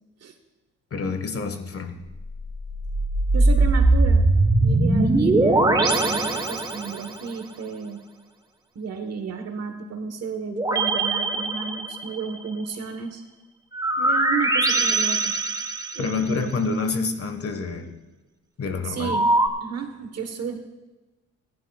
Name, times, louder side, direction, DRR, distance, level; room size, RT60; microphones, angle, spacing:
voice 1, 0.9-2.0 16.0-17.9 18.6-19.2, left 4 dB, 50° left, 7 dB, 1.6 m, -27 dB
sound 1, 2.1-7.2 10.5-12.3 13.7-16.3 19.0-19.5, right 2 dB, 15° right, 1.3 m, -21 dB
voice 2, 3.3-4.3 4.6-8.0 8.7-13.2 14.0-15.3 15.9-16.5 18.8-19.3 19.6-20.6, right 5 dB, 55° right, 6 dB, 1.4 m, -32 dB
18.0 x 11.0 x 2.4 m, 1.1 s
cardioid pair, 90°, 30 cm